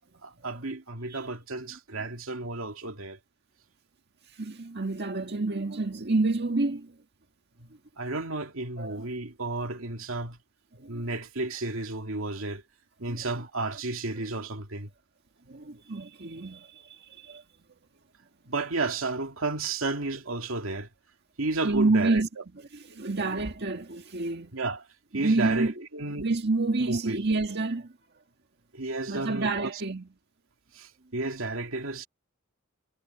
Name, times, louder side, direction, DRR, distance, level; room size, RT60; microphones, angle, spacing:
voice 1, 0.2-3.2 8.0-10.4 10.9-12.6 13.0-14.9 18.5-20.9 21.4-22.4 24.5-24.8 25.1-26.3 26.8-27.2 28.7-29.7 30.7-32.1, right 3 dB, 85° right, 2.4 m, -32 dB
voice 2, 4.4-6.9 8.8-9.1 10.7-11.0 13.0-13.3 15.5-17.4 21.6-22.3 22.5-24.6 25.1-25.7 26.1-27.9 29.1-30.1, right 3 dB, 55° right, 1.7 m, -28 dB
head